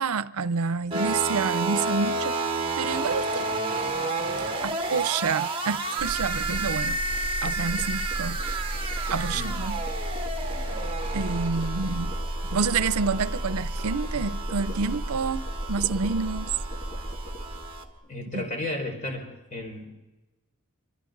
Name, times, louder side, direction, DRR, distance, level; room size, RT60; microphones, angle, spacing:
voice 1, 0.0-2.4 2.8-3.5 4.6-8.4 9.1-9.8 11.1-12.2 12.5-16.5 18.3-18.4, right 5 dB, 90° right, 0.6 m, -28 dB
sound 1, 0.9-17.8, right 3 dB, 25° right, 1.7 m, -31 dB
sound 2, 6.0-17.9, equal, 20° left, 6.6 m, -33 dB
voice 2, 18.0-19.3 19.5-19.9, left 1 dB, 35° left, 4.9 m, -33 dB
26.5 x 25.0 x 4.0 m
head